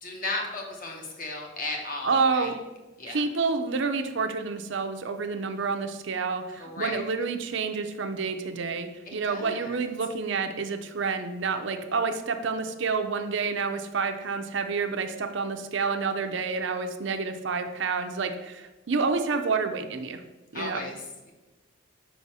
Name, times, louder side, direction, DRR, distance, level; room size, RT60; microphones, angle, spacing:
voice 1, 0.0-2.5 3.0-3.2 6.6-7.0 9.1-9.8 20.5-20.9, left 2 dB, 40° left, 0 dB, 1.1 m, -35 dB
voice 2, 2.0-2.5 3.1-20.2 20.5-20.8, right 4 dB, 60° right, 6 dB, 0.5 m, -29 dB
5.5 x 4.1 x 6.0 m, 1.1 s
head